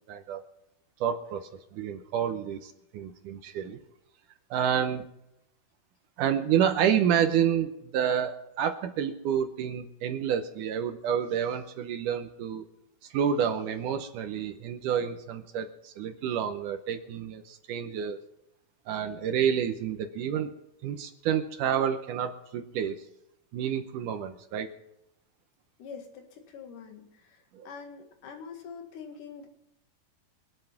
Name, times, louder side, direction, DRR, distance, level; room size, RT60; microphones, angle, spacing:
voice 1, 0.1-0.4 1.0-3.8 4.5-5.1 6.2-12.6 13.0-18.2 18.9-20.5 20.8-23.0 23.5-24.7 27.5-27.7, right 8 dB, 75° right, 8 dB, 2.0 m, -29 dB
voice 2, 25.8-29.5, left 6 dB, 60° left, 4 dB, 3.2 m, -45 dB
24.5 x 8.2 x 5.8 m, 0.82 s
omnidirectional pair, 4.5 m